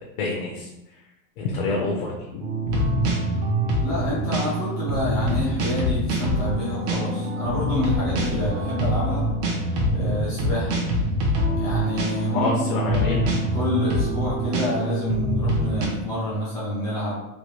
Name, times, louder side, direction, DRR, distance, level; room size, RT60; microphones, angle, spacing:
voice 1, 0.2-1.0 1.4-2.5 9.9-10.2 12.3-13.4, left 3 dB, 70° left, -2 dB, 0.8 m, -27 dB
sound 1, 2.4-15.9, right 1 dB, 35° right, 0.6 m, -25 dB
voice 2, 3.8-9.3 9.9-10.8 11.6-12.9 13.5-17.2, left 1 dB, 10° left, -10 dB, 0.3 m, -28 dB
3.3 x 2.2 x 3.0 m, 0.97 s
supercardioid pair, 160°, 46 cm